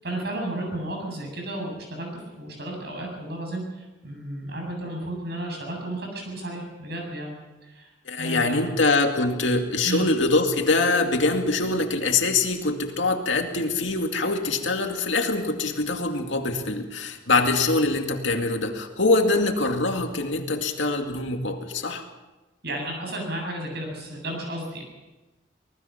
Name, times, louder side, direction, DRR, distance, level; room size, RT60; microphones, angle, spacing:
voice 1, 0.0-7.3 7.6-7.9 8.2-8.7 9.8-10.1 22.6-24.8, right 1 dB, 60° right, 1 dB, 7.9 m, -33 dB
voice 2, 8.1-22.0, left 3 dB, 75° left, 4 dB, 2.3 m, -24 dB
24.5 x 19.5 x 5.8 m, 1.1 s
head